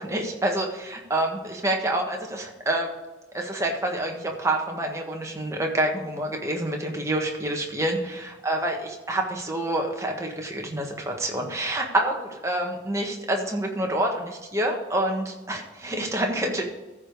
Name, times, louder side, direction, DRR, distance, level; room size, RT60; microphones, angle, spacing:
voice 1, 0.0-2.9 3.3-16.6, right 1 dB, 15° right, 1 dB, 1.5 m, -27 dB
14.0 x 4.9 x 5.3 m, 1.1 s
head